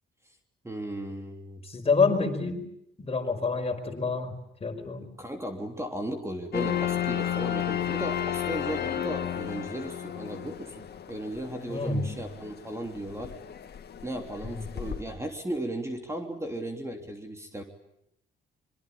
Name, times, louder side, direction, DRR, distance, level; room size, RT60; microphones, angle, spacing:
voice 1, 0.6-1.6 5.2-13.3 14.0-17.6, right 1 dB, 15° right, 4 dB, 3.2 m, -36 dB
voice 2, 1.6-2.7 3.0-5.1 11.7-12.2 14.4-14.6, left 4 dB, 30° left, 5 dB, 4.9 m, -28 dB
sound 1, 6.5-15.0, left 10 dB, 55° left, 2.1 m, -33 dB
25.5 x 23.5 x 8.7 m, 0.78 s
cardioid pair, 90°, 20 cm